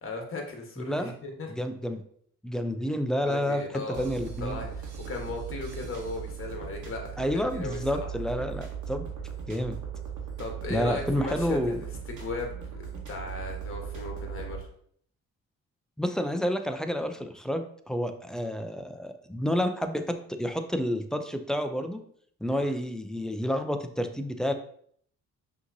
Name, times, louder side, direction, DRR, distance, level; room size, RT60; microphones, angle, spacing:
voice 1, 0.0-1.5 3.2-4.0 4.4-8.1 10.4-14.7 22.5-22.7, left 3 dB, 45° left, 2 dB, 1.2 m, -37 dB
voice 2, 0.8-1.1 1.5-2.0 2.4-4.6 7.2-9.1 9.5-9.8 10.7-11.8 16.0-22.0 22.4-24.5, equal, ahead, 7 dB, 0.4 m, -29 dB
sound 1, 3.9-14.6, right 7 dB, 80° right, 1.1 m, -38 dB
5.6 x 2.9 x 2.6 m, 0.63 s
cardioid pair, 90°, 30 cm